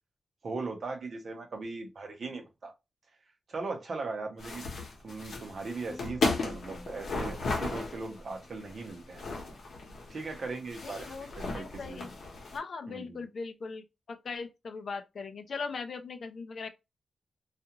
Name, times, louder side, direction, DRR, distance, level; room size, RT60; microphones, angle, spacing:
voice 1, 0.4-2.7 3.5-4.7 5.0-9.2 10.1-12.1 12.9-13.2, right 3 dB, 50° right, 0.8 m, -39 dB
sound 1, 4.4-12.6, left 3 dB, 75° left, 0.9 m, -36 dB
sound 2, 5.9-10.3 10.6-11.0, left 1 dB, 5° right, 0.5 m, -55 dB
voice 2, 10.8-12.1 12.5-16.7, left 4 dB, 55° left, 0.5 m, -39 dB
2.4 x 2.4 x 2.8 m
wide cardioid pair, 165°, 0 cm